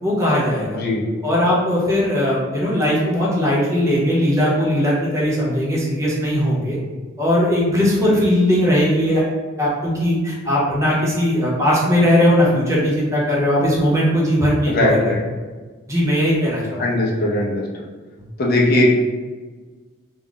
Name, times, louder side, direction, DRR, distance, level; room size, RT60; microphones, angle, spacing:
voice 1, 0.0-0.8 1.2-6.8 7.2-9.2 9.6-15.1 15.9-16.8 18.2-18.3, equal, 15° right, -6 dB, 0.7 m, -19 dB
voice 2, 14.7-15.2 16.8-17.6 18.4-18.9, left 1 dB, 45° left, -2 dB, 0.5 m, -19 dB
2.3 x 2.0 x 3.8 m, 1.4 s
head